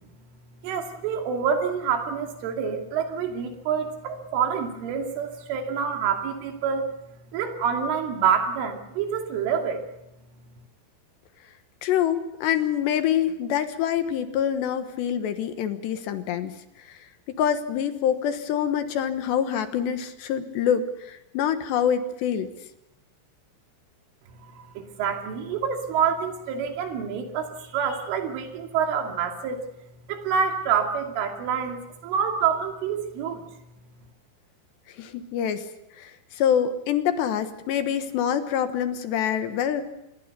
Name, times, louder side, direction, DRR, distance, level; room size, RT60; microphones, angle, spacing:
voice 1, 0.6-6.9 7.3-9.8 24.5-29.6 30.1-33.4, right 7 dB, 80° right, 4 dB, 5.2 m, -27 dB
voice 2, 11.8-17.0 17.3-22.5 35.0-35.7 36.0-39.8, left 9 dB, 70° left, 9 dB, 3.2 m, -26 dB
26.5 x 21.5 x 6.9 m, 0.87 s
omnidirectional pair, 5.6 m